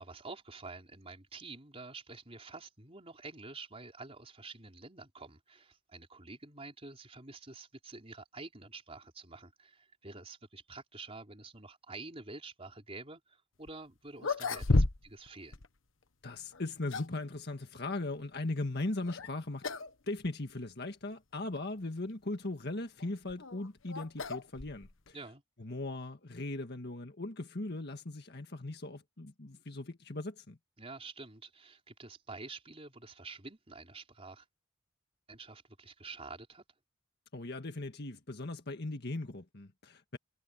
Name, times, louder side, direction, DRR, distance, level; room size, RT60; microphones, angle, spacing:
voice 1, 0.0-15.6 25.1-25.4 30.8-34.5 35.3-36.6, right 3 dB, 30° right, 4.2 m, -48 dB
sound 1, 13.7-13.8 14.2-15.3 15.5-15.7 16.5-17.2 19.0-19.3 19.6-19.9 20.2-20.3 21.1-21.2 23.0-25.1, left 2 dB, 75° left, 1.2 m, -32 dB
voice 2, 16.2-19.6 20.1-25.2 25.6-30.6 37.3-40.2, left 2 dB, 55° left, 1.7 m, -39 dB
head